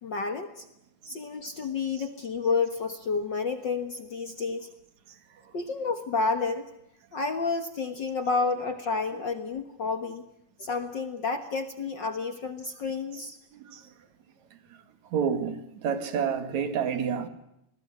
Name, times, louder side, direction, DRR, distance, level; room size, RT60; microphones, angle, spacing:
voice 1, 0.0-0.7 1.1-4.7 5.5-6.7 7.1-10.2 10.6-13.4, left 4 dB, 45° left, 1.7 m, -30 dB
voice 2, 13.5-13.9 15.1-17.3, right 7 dB, 75° right, 3.2 m, -29 dB
27.0 x 20.0 x 9.7 m
omnidirectional pair, 3.3 m